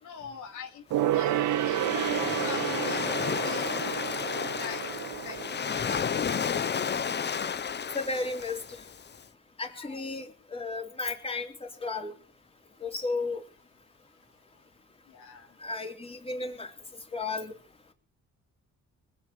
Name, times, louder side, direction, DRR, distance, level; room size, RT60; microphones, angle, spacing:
voice 1, 0.0-4.8 5.2-5.4 5.7-6.8 9.7-10.0 15.1-15.5, left 6 dB, 80° left, 3 dB, 2.8 m, -44 dB
Waves surf, 0.9-9.2, left 7 dB, 35° left, 0.9 m, -32 dB
Gong, 0.9-6.8 7.1-7.2, right 12 dB, 85° right, 0.9 m, -31 dB
voice 2, 7.9-8.6 9.6-12.1 12.8-13.4 15.6-16.7 17.1-17.6, left 3 dB, 20° left, 3 dB, 3.8 m, -33 dB
20.5 x 8.1 x 7.2 m, 0.38 s
cardioid pair, 90°, 30 cm